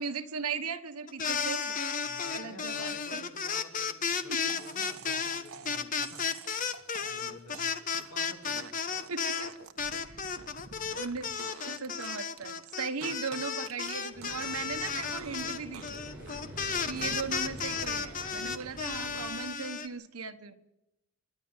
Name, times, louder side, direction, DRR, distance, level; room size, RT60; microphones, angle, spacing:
voice 1, 0.0-1.7 2.3-3.2 4.3-4.5 5.7-5.8 9.1-9.5 10.0-10.2 10.9-11.2 11.7-16.0 16.9-20.5, right 5 dB, 85° right, 9 dB, 1.3 m, -38 dB
sound 1, 1.1-9.5 9.8-19.9, left 6 dB, 35° left, 1.0 m, -33 dB
voice 2, 2.0-6.2 6.5-6.6 7.0-8.7 16.7-17.0, left 1 dB, 80° left, 3 dB, 3.5 m, -51 dB
sound 2, 4.5-14.7 15.0-15.4 15.7-18.8 19.1-19.6, right 5 dB, 70° right, 1.4 m, -49 dB
sound 3, 14.1-19.3, equal, 10° right, 7.3 m, -47 dB
26.5 x 11.0 x 9.6 m, 0.92 s
head